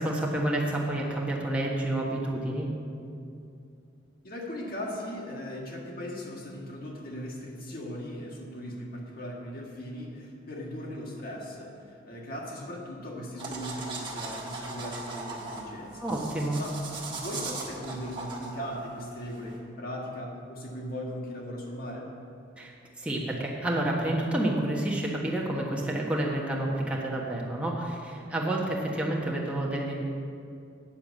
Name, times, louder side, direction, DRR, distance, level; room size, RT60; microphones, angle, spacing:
voice 1, 0.0-2.7 16.0-16.6 22.6-29.9, right 1 dB, 5° right, -4 dB, 1.3 m, -29 dB
voice 2, 4.2-16.1 16.6-22.1, equal, 50° left, -1 dB, 1.8 m, -38 dB
sound 1, 13.4-19.6, right 3 dB, 25° right, 1.5 m, -39 dB
8.9 x 7.1 x 8.2 m, 2.5 s
head